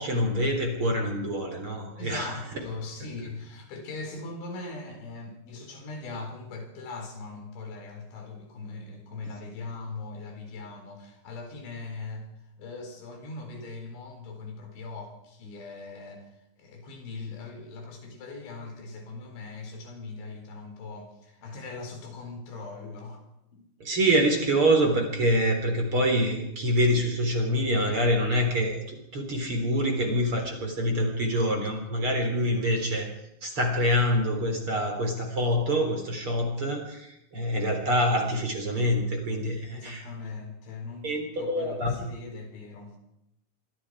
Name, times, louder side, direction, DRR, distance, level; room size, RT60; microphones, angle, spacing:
voice 1, 0.0-2.3 23.8-33.1 33.4-40.1 41.0-41.9, equal, 30° right, 3 dB, 4.2 m, -26 dB
voice 2, 2.0-12.3 12.6-16.3 16.6-23.2 23.5-23.7 39.7-43.0, left 3 dB, 85° left, 4 dB, 6.7 m, -40 dB
26.0 x 25.5 x 4.9 m, 0.82 s
omnidirectional pair, 5.2 m